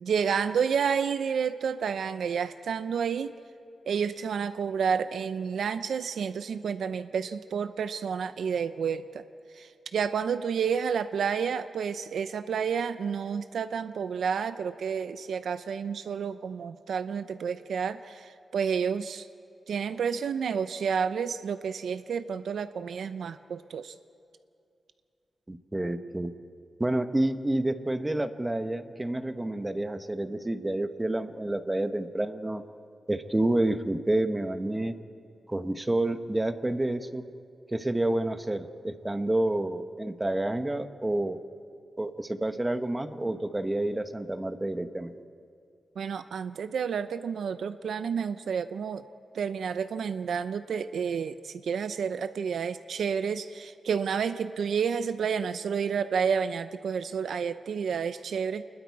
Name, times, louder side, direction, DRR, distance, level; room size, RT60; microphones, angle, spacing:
voice 1, 0.0-3.3 3.9-9.2 9.5-19.3 19.7-23.9 46.0-49.1 49.3-58.6, right 6 dB, 90° right, 11 dB, 0.5 m, -30 dB
voice 2, 25.5-26.3 26.8-32.6 33.1-34.9 35.5-37.2 37.7-41.4 42.0-45.1, right 1 dB, 15° right, 9 dB, 1.0 m, -29 dB
29.0 x 21.0 x 4.7 m, 2.4 s
wide cardioid pair, 105°, 0 cm